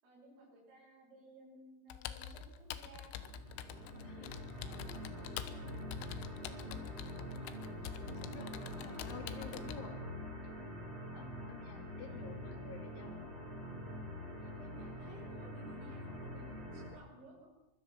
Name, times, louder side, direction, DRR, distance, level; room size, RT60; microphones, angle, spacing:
voice 1, 0.0-3.3 3.6-7.8 8.9-9.6 11.1-11.3 12.1-12.2 14.4-17.5, right 1 dB, 80° right, -7 dB, 10.0 m, -58 dB
Computer keyboard, 1.9-9.8, left 9 dB, 85° left, 3.7 m, -47 dB
sound 1, 3.2-16.9, equal, 30° right, 7.0 m, -45 dB
voice 2, 4.0-4.4 8.1-10.0 11.1-13.3, left 6 dB, 70° left, 5 dB, 4.9 m, -51 dB
24.0 x 23.5 x 6.0 m, 0.95 s
omnidirectional pair, 5.8 m